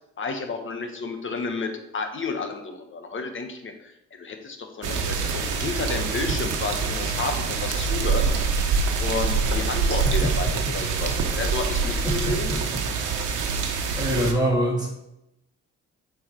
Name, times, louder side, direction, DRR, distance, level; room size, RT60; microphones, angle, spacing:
voice 1, 0.2-8.3 9.0-12.5, left 4 dB, 40° left, 5 dB, 1.3 m, -31 dB
sound 1, 4.8-14.3, right 5 dB, 80° right, 1.1 m, -25 dB
voice 2, 12.0-12.6 14.0-14.9, equal, 15° right, -5 dB, 2.9 m, -25 dB
8.1 x 4.8 x 4.7 m, 0.88 s
cardioid pair, 90°, 30 cm